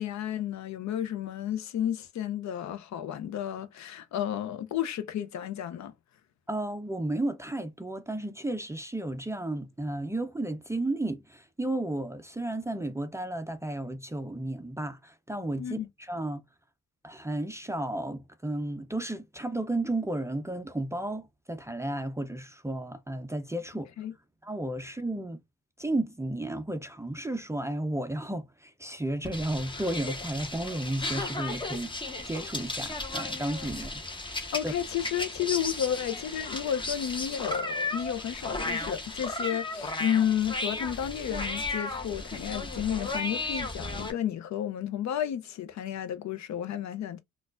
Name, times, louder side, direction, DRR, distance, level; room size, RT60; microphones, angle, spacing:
voice 1, 0.0-5.9 15.6-15.9 24.0-24.1 34.5-47.2, left 10 dB, 65° left, 0.6 m, -32 dB
voice 2, 6.5-16.4 17.0-23.9 24.4-25.4 25.8-31.9 32.3-34.0 34.6-34.7, right 1 dB, 10° right, 0.4 m, -33 dB
sound 1, 29.2-44.1, left 2 dB, 15° left, 0.9 m, -35 dB
4.2 x 2.3 x 2.4 m
cardioid pair, 90°, 30 cm